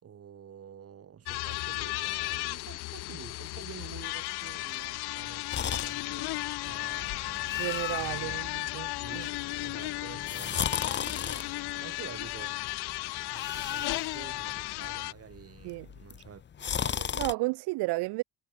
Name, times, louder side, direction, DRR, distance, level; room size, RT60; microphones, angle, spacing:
voice 1, 0.0-8.4 9.0-9.3 9.6-12.6 13.3-17.2, right 8 dB, 40° right, 4.1 m, -49 dB
sound 1, 1.3-15.1, left 21 dB, 85° left, 1.5 m, -35 dB
sound 2, 5.5-17.3, left 8 dB, 30° left, 1.0 m, -37 dB
voice 2, 7.6-9.3 15.6-15.9 17.1-18.2, right 23 dB, 90° right, 1.0 m, -32 dB
cardioid pair, 140°, 38 cm